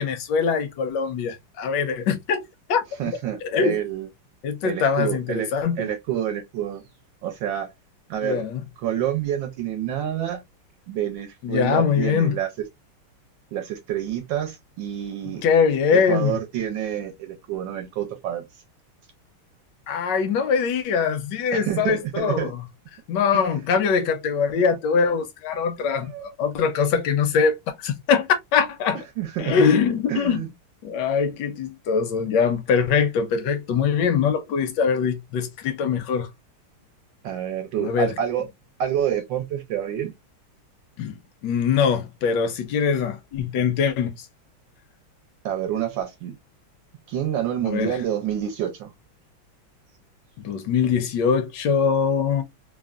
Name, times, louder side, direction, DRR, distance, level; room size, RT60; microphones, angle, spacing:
voice 1, 0.0-2.4 2.7-2.8 3.5-3.8 4.4-5.9 8.2-8.6 11.4-12.3 15.4-16.4 19.9-22.6 23.1-29.0 29.4-30.4 30.8-36.3 37.8-38.1 41.0-41.1 41.4-44.3 47.6-48.0 50.4-52.4, left 6 dB, 75° left, 1.1 m, -22 dB
voice 2, 3.0-4.1 4.6-6.8 7.2-7.7 8.1-8.4 8.8-10.4 10.9-12.6 13.5-15.4 15.9-18.5 21.5-22.5 23.3-23.6 24.5-24.6 26.0-26.3 29.2-29.6 30.1-30.5 37.2-38.5 38.8-40.1 45.4-46.4 47.1-48.9, right 10 dB, 75° right, 1.2 m, -28 dB
3.4 x 2.1 x 2.3 m
omnidirectional pair, 2.3 m